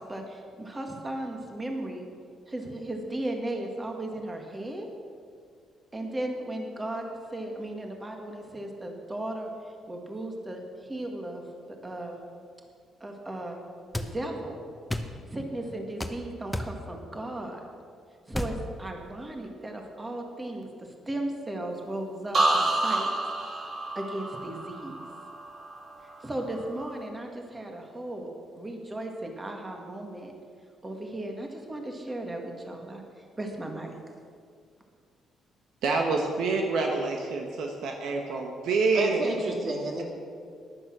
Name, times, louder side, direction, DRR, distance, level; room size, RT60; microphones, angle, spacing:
voice 1, 0.0-2.0 2.5-4.9 5.9-7.0 7.3-11.4 11.7-12.2 13.0-13.6 13.9-14.6 15.1-17.6 18.3-22.4 22.8-23.1 23.9-25.0 26.0-28.3 28.6-30.3 30.8-33.9, right 1 dB, 20° right, 2 dB, 1.9 m, -36 dB
sound 1, 13.9-14.1 14.9-15.1 16.0-16.2 16.5-16.7 18.3-18.6, left 1 dB, 5° left, 1.0 m, -31 dB
sound 2, 22.3-26.1 26.5-27.0, right 2 dB, 35° right, 2.0 m, -29 dB
voice 2, 35.8-39.3, right 3 dB, 80° right, 2 dB, 1.3 m, -27 dB
voice 3, 38.9-40.0, right 2 dB, 55° right, 1 dB, 3.0 m, -30 dB
14.0 x 11.0 x 6.2 m, 2.2 s
cardioid pair, 90°, 0 cm